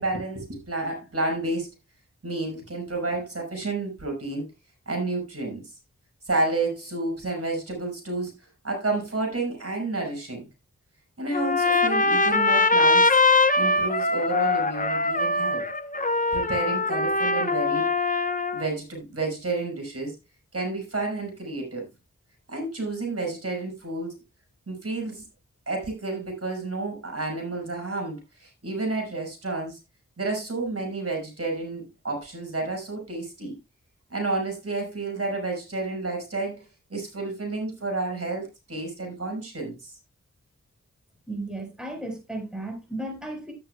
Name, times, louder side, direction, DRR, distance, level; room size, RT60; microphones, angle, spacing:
voice 1, 0.0-1.7 2.2-4.4 4.9-5.7 6.2-8.3 8.6-10.4 11.2-13.2 13.6-15.7 16.3-17.9 18.5-20.2 20.5-21.9 22.5-24.2 24.7-25.3 25.7-29.8 30.2-33.5 34.1-39.9, right 2 dB, 50° right, 5.6 m, -30 dB
Trumpet, 11.3-18.7, left 3 dB, 25° left, 0.9 m, -22 dB
voice 2, 41.3-43.5, right 1 dB, 5° right, 4.4 m, -34 dB
12.5 x 10.5 x 2.3 m
wide cardioid pair, 65°, 30 cm